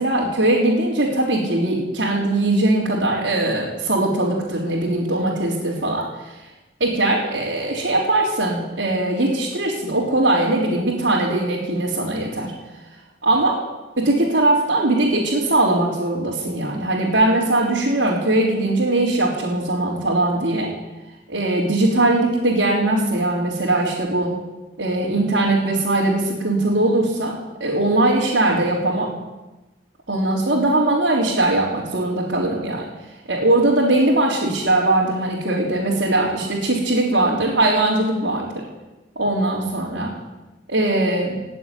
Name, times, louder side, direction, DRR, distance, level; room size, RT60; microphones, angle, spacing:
voice 1, 0.0-6.1 6.8-12.5 13.2-13.6 14.0-20.7 21.3-24.4 24.8-29.1 30.1-32.9 33.3-38.6 39.2-40.1 40.7-41.4, right 2 dB, 75° right, -6 dB, 3.8 m, -20 dB
18.0 x 7.9 x 10.0 m, 1.1 s
head